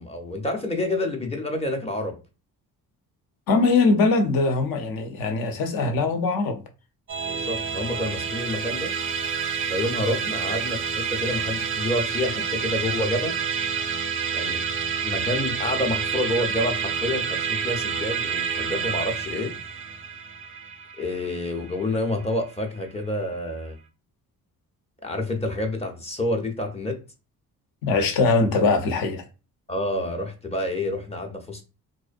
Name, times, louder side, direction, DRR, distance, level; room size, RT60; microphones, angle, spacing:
voice 1, 0.0-2.2 7.3-8.9 9.7-13.4 14.3-14.6 15.0-19.5 21.0-23.8 25.0-27.0 29.7-31.6, left 1 dB, 15° left, 0.5 m, -28 dB
voice 2, 3.5-6.6 27.8-29.3, left 3 dB, 65° left, 0.7 m, -21 dB
Musical instrument, 7.1-22.6, right 6 dB, 35° right, 0.4 m, -28 dB
2.6 x 2.1 x 2.4 m
cardioid pair, 90°, 39 cm